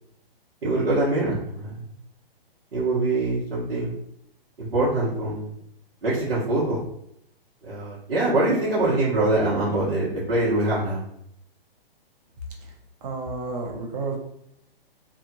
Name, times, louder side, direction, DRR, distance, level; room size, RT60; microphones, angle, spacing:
voice 1, 0.6-1.8 2.7-3.9 4.7-5.5 6.0-6.8 7.6-11.0, right 2 dB, 85° right, -10 dB, 1.5 m, -24 dB
voice 2, 13.0-14.2, right 3 dB, 40° right, 0 dB, 0.9 m, -31 dB
3.4 x 2.5 x 2.8 m, 0.73 s
hypercardioid pair, 140°, 30 cm